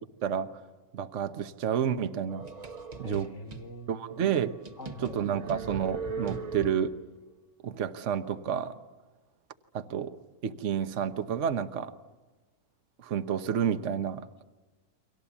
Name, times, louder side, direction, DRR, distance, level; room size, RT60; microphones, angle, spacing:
voice 1, 0.2-0.6 0.9-2.5 3.0-3.3 3.9-4.6 5.0-7.0 7.6-8.8 9.7-10.2 10.4-11.9 13.0-14.3, right 8 dB, 55° right, 10 dB, 1.3 m, -30 dB
sound 1, 2.3-3.7 4.2-4.3 4.7-7.1, right 5 dB, 30° right, 0.9 m, -39 dB
voice 2, 3.0-4.1 4.8-5.2, equal, 50° left, 4 dB, 1.7 m, -42 dB
30.0 x 24.5 x 7.2 m, 1.2 s
omnidirectional pair, 1.6 m